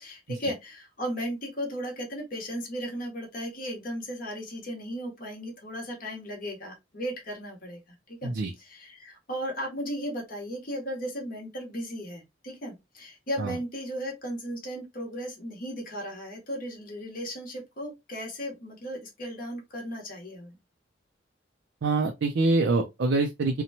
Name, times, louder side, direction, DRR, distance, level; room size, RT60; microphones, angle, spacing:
voice 1, 0.0-8.3 8.6-20.6, equal, 45° left, 1.0 m, -36 dB
voice 2, 21.8-23.6, right 3 dB, 70° right, 0.4 m, -25 dB
2.8 x 2.1 x 2.6 m
head